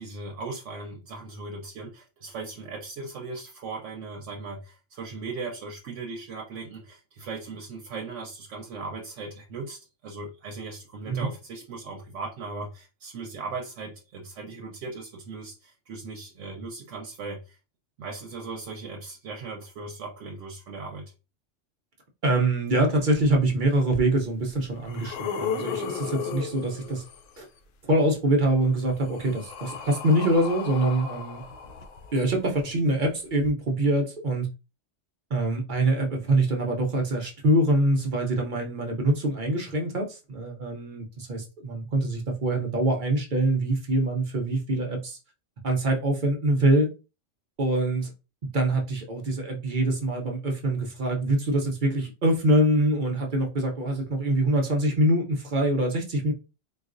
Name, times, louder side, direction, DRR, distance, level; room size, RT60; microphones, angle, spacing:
voice 1, 0.0-17.6 18.0-21.1, right 3 dB, 80° right, 1.0 m, -38 dB
voice 2, 22.2-27.0 27.4-27.5 27.8-31.4 32.1-34.5 35.3-45.2 45.6-46.9 47.6-48.1 48.5-56.3, right 1 dB, 50° right, 0.7 m, -24 dB
sound 1, 23.9-24.0 24.6-27.3 28.5-32.4 33.4-33.5, left 6 dB, 90° left, 1.0 m, -35 dB
3.9 x 2.4 x 2.5 m
omnidirectional pair, 1.3 m